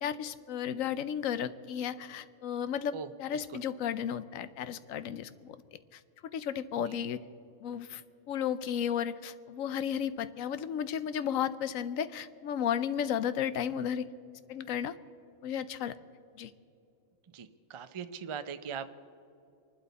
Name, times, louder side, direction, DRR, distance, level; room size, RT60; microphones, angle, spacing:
voice 1, 0.0-5.6 5.9-6.0 6.3-7.2 7.6-8.0 8.3-14.1 14.5-14.9 15.4-15.9 16.4-16.5, left 8 dB, 85° left, 14 dB, 1.1 m, -33 dB
voice 2, 17.3-18.9, right 7 dB, 45° right, 10 dB, 0.4 m, -40 dB
25.5 x 12.0 x 4.1 m, 2.7 s
omnidirectional pair, 1.4 m